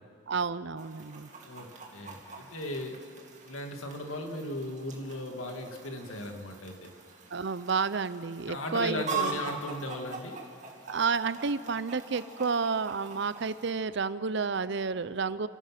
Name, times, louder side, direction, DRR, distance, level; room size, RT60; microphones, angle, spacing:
voice 1, 0.3-1.3 7.3-9.4 10.9-15.5, right 5 dB, 60° right, 15 dB, 0.6 m, -30 dB
Chicken rooster, 0.8-13.7, right 4 dB, 35° right, 2.4 m, -42 dB
voice 2, 1.4-3.0 3.4-6.9 8.4-10.4, left 1 dB, 90° left, 4 dB, 2.2 m, -37 dB
29.5 x 15.5 x 6.0 m, 2.3 s
head